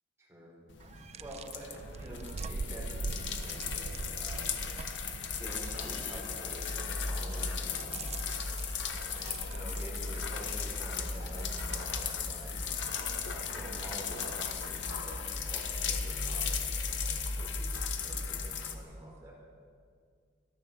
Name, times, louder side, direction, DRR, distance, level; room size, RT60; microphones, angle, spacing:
voice 1, 0.2-0.5 1.2-4.5 5.4-7.8 9.5-12.5 13.2-19.3, right 1 dB, 15° right, -5 dB, 4.6 m, -47 dB
sound 1, 0.7-18.7, left 8 dB, 75° left, 1.1 m, -38 dB
sound 2, 0.8-14.9, right 3 dB, 35° right, 0.4 m, -44 dB
sound 3, 4.3-18.6, left 1 dB, 40° left, 1.1 m, -40 dB
13.5 x 11.5 x 7.0 m, 2.1 s
head